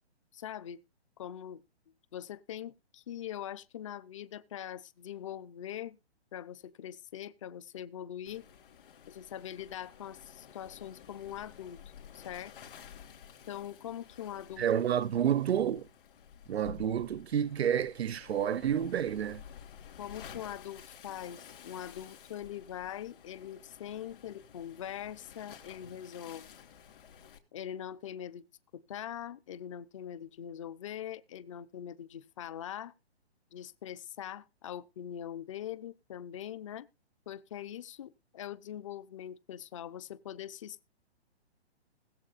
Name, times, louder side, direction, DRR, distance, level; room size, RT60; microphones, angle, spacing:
voice 1, 0.3-0.8 1.2-1.6 2.1-6.0 6.3-8.5 9.1-11.8 12.1-12.5 13.5-14.7 20.0-26.5 27.5-28.4 28.7-32.9 33.5-36.9 37.3-40.9, left 10 dB, 30° left, 0.6 m, -42 dB
Waves surf, 8.3-27.4, left 8 dB, 50° left, 3.3 m, -53 dB
voice 2, 14.6-15.9 16.5-19.4, right 9 dB, 70° right, 0.7 m, -29 dB
20.5 x 7.5 x 2.5 m
hypercardioid pair, 155°, 33 cm